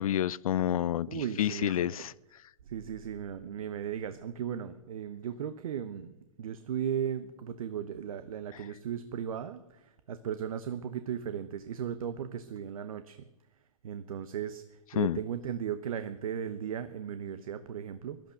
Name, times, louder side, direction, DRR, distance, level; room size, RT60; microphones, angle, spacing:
voice 1, 0.0-2.4 8.5-8.7 14.9-15.2, left 11 dB, 70° left, 0.4 m, -30 dB
voice 2, 1.1-2.1 2.7-13.3 13.8-18.2, right 8 dB, 70° right, 1.0 m, -36 dB
17.0 x 12.0 x 6.7 m
hypercardioid pair, 120°, 19 cm